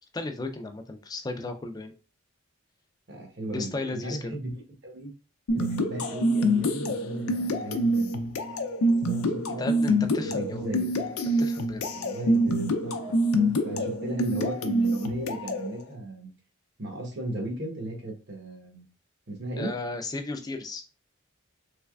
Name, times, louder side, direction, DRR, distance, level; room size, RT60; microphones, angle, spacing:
voice 1, 0.1-1.9 3.5-4.3 9.6-10.7 11.4-11.8 19.6-20.8, left 2 dB, 20° left, 7 dB, 0.3 m, -35 dB
voice 2, 3.1-4.5 4.8-5.1 5.5-8.1 9.1-9.8 10.2-10.9 11.9-16.3 16.8-18.8 19.3-19.7, right 1 dB, 55° right, 2 dB, 0.9 m, -36 dB
sound 1, 5.5-15.7, equal, 90° left, 0.5 m, -26 dB
3.3 x 3.1 x 2.3 m, 0.34 s
head